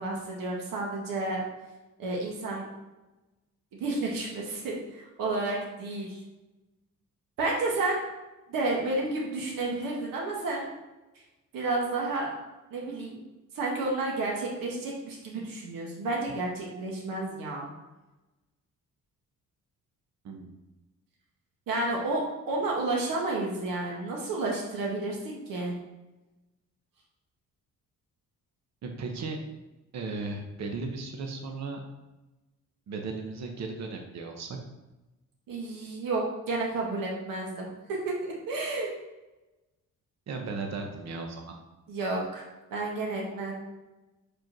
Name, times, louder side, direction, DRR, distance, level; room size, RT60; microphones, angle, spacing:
voice 1, 0.0-1.4 2.0-2.6 3.7-6.2 7.4-8.0 8.5-10.7 11.5-12.3 12.7-13.2 13.5-17.7 21.7-25.7 35.5-38.2 38.5-38.9 41.9-42.4 42.7-43.5, right 2 dB, 90° right, -3 dB, 1.9 m, -31 dB
voice 2, 28.8-29.4 29.9-31.8 32.9-34.6 40.3-41.4, right 3 dB, 55° right, 2 dB, 1.0 m, -36 dB
5.3 x 4.5 x 6.0 m, 1.1 s
cardioid pair, 175°, 33 cm